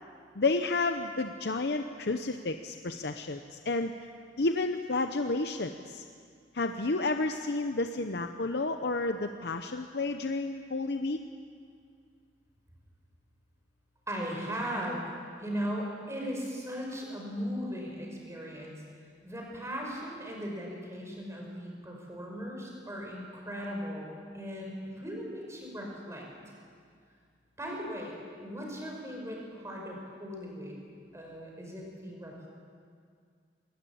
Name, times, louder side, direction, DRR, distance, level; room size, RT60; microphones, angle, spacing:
voice 1, 0.3-3.9 4.4-6.0 6.5-11.2, left 3 dB, 65° left, 6 dB, 0.8 m, -31 dB
voice 2, 14.1-15.0 15.4-18.8 19.2-26.2 27.6-28.1 28.4-30.7 31.1-32.5, equal, 15° right, -1 dB, 5.6 m, -38 dB
21.5 x 19.5 x 8.6 m, 2.2 s
head